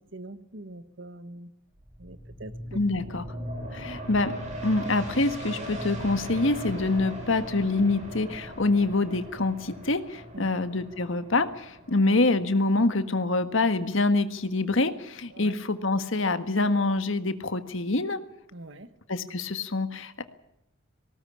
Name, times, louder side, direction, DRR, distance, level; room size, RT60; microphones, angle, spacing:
voice 1, 0.1-1.5 2.0-2.5 10.3-10.5 15.3-15.5 18.5-18.9, right 1 dB, 60° right, 12 dB, 1.4 m, -43 dB
sound 1, 1.7-15.0 15.4-15.5, equal, 35° right, 6.1 m, -39 dB
voice 2, 2.7-3.2 3.7-4.3 4.6-18.2 19.1-20.2, left 2 dB, 70° left, 10 dB, 1.6 m, -26 dB
19.0 x 18.5 x 8.7 m, 0.83 s
head